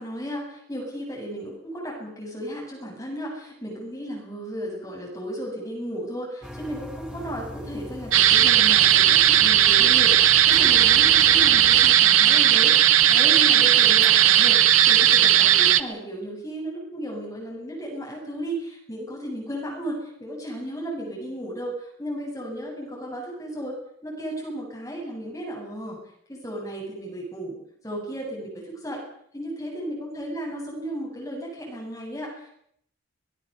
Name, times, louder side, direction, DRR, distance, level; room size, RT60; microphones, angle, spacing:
voice 1, 0.0-23.8 24.0-26.0 26.3-27.6 27.8-29.0 29.3-32.5, equal, 15° left, -2 dB, 7.6 m, -34 dB
sound 1, 6.4-11.9, equal, 5° right, 2.0 m, -40 dB
sound 2, 8.1-15.8, right 11 dB, 80° right, 1.1 m, -16 dB
24.0 x 20.0 x 6.9 m, 0.70 s
head